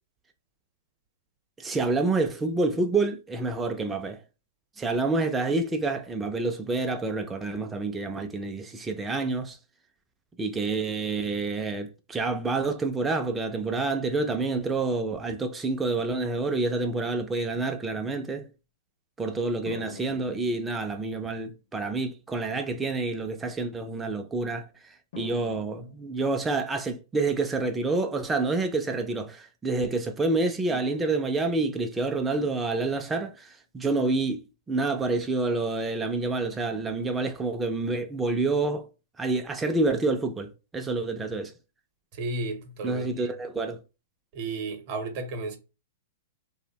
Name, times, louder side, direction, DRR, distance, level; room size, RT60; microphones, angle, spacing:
voice 1, 1.6-4.2 4.8-9.6 10.4-18.5 19.2-38.9 39.2-41.5 42.8-43.8, right 3 dB, 10° right, 0.3 m, -28 dB
sound 1, 19.7-21.4 22.3-22.4 25.1-26.9 30.7-32.0, left 4 dB, 65° left, 0.6 m, -46 dB
voice 2, 42.1-43.3 44.3-45.6, right 2 dB, 45° right, 0.7 m, -33 dB
2.8 x 2.0 x 2.6 m
hypercardioid pair, 145°, 0 cm